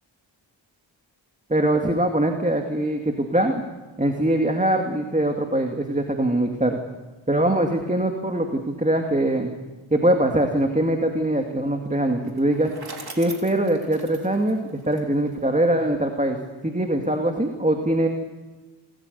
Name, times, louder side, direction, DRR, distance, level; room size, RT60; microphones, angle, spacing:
voice 1, 1.5-3.6 4.0-6.8 7.3-9.5 9.9-12.7 13.1-16.4 16.6-18.1, right 1 dB, 15° right, 3 dB, 2.4 m, -22 dB
Bicycle, 12.2-15.4, right 3 dB, 50° right, 3.7 m, -41 dB
27.5 x 14.0 x 8.3 m, 1.2 s
cardioid pair, 45°, 47 cm